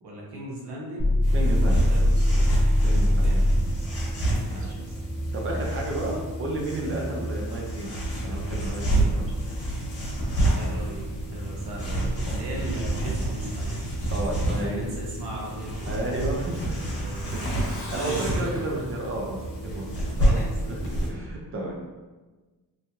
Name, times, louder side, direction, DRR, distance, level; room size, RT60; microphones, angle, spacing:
voice 1, 0.0-1.2 1.6-2.5 3.2-3.5 3.9-4.0 4.5-4.9 10.5-11.0 11.3-13.8 14.5-15.9 16.7-17.4 17.9-18.5 20.0-21.0, right 1 dB, 70° right, -3 dB, 1.0 m, -38 dB
sound 1, 1.0-3.8, equal, 30° left, 0.8 m, -21 dB
sound 2, 1.2-21.1, right 1 dB, 55° left, 1.3 m, -29 dB
voice 2, 1.3-1.8 2.8-3.3 4.5-4.7 5.3-7.9 8.2-9.4 14.1-14.8 15.9-16.6 17.3-17.5 17.9-19.4 19.7-20.4 20.7-20.8 21.1-21.8, right 1 dB, 30° right, -1 dB, 0.7 m, -32 dB
Truck, 15.4-20.1 20.4-20.5 20.8-20.9, left 1 dB, 80° left, 1.0 m, -41 dB
3.1 x 2.2 x 2.8 m, 1.3 s
cardioid pair, 60°, 41 cm